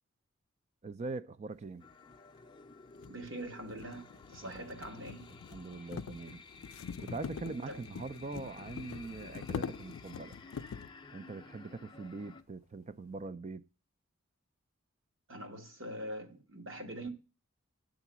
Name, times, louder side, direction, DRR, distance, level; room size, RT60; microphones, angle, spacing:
voice 1, 0.8-1.8 4.4-4.8 5.5-6.4 7.0-10.4 11.1-13.7, right 3 dB, 35° right, 0.3 m, -42 dB
sound 1, 1.8-12.4, left 4 dB, 20° left, 0.5 m, -54 dB
sound 2, 2.1-2.2 2.9-11.0, left 6 dB, 75° left, 0.4 m, -44 dB
voice 2, 3.1-5.3 7.7-7.8 15.3-17.1, right 1 dB, 60° right, 1.4 m, -43 dB
8.2 x 3.8 x 6.0 m
head